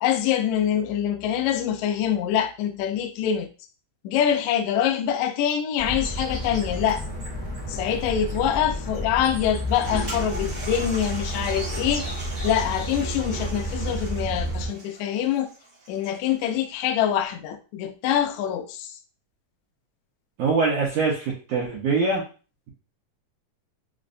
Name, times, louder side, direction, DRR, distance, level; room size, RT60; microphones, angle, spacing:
voice 1, 0.0-3.5 4.0-7.0 7.7-15.5 15.9-19.0, left 9 dB, 85° left, 1.6 m, -25 dB
sound 1, 5.8-14.7, equal, 20° left, 0.6 m, -31 dB
sound 2, 6.0-13.1, right 1 dB, 30° right, 0.9 m, -42 dB
Toilet flush, 9.4-16.3, right 1 dB, 55° right, 0.6 m, -39 dB
voice 2, 20.4-22.2, right 4 dB, 75° right, 1.5 m, -23 dB
5.0 x 2.1 x 2.5 m
omnidirectional pair, 3.8 m